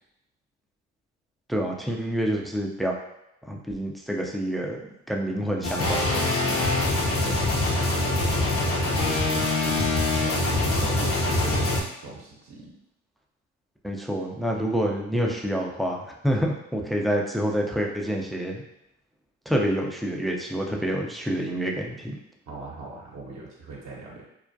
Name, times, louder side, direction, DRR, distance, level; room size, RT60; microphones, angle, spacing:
voice 1, 1.5-3.0 3.5-4.8 5.1-6.6 7.2-7.4 13.8-18.6 19.5-22.2, equal, ahead, -1 dB, 0.3 m, -27 dB
sound 1, 5.6-11.8, left 2 dB, 45° left, 0.6 m, -24 dB
voice 2, 7.9-8.3 8.8-11.6 12.0-12.7 22.5-24.3, right 3 dB, 55° right, -4 dB, 0.7 m, -39 dB
2.3 x 2.2 x 2.5 m, 0.83 s
hypercardioid pair, 60°, 33 cm